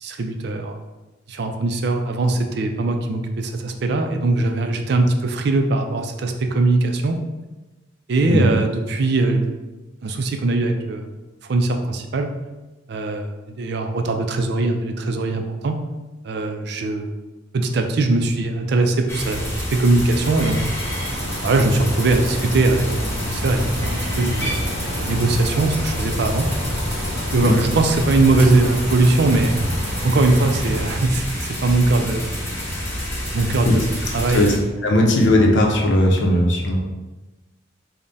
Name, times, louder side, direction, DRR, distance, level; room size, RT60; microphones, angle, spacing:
voice 1, 0.0-0.8 1.3-7.2 8.1-9.5 10.0-11.1 11.4-12.3 12.9-15.8 16.2-17.2 17.5-20.6 21.4-24.6 25.0-26.5 27.3-29.6 30.0-32.3 33.3-34.5, right 2 dB, 55° right, 5 dB, 0.4 m, -21 dB
sound 1, 19.1-34.6, equal, 15° left, 0.7 m, -28 dB
sound 2, 19.5-30.9, equal, 30° right, 1.1 m, -29 dB
voice 2, 34.8-36.8, left 1 dB, 65° left, 0 dB, 0.6 m, -17 dB
3.5 x 2.1 x 3.9 m, 1.1 s
head